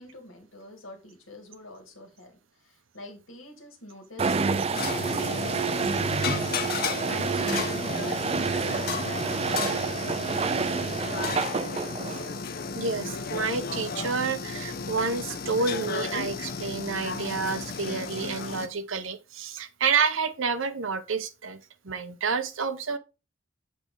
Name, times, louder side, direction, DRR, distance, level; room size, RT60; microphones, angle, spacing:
voice 1, 0.0-2.3 2.6-10.9, left 1 dB, 70° left, 2.1 m, -45 dB
sound 1, 4.2-12.4, right 4 dB, 30° right, 0.3 m, -28 dB
sound 2, 4.7-18.7, left 4 dB, 45° left, 0.7 m, -33 dB
voice 2, 12.7-21.6 21.8-23.0, right 5 dB, 70° right, 0.8 m, -29 dB
7.8 x 4.7 x 3.8 m
head